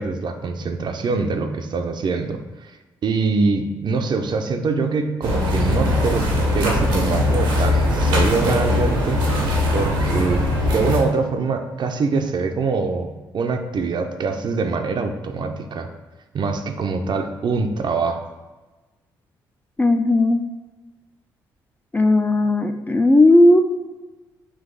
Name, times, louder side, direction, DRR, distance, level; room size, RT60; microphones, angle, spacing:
voice 1, 0.0-2.4 3.0-10.4 10.7-15.9 16.3-18.2, right 4 dB, 50° right, 6 dB, 0.5 m, -24 dB
sound 1, 5.2-11.0, left 1 dB, 85° right, 0.8 m, -20 dB
voice 2, 19.8-20.4 21.9-23.6, left 1 dB, 15° left, 6 dB, 0.3 m, -15 dB
3.9 x 2.5 x 3.8 m, 1.2 s
hypercardioid pair, 45°, 10 cm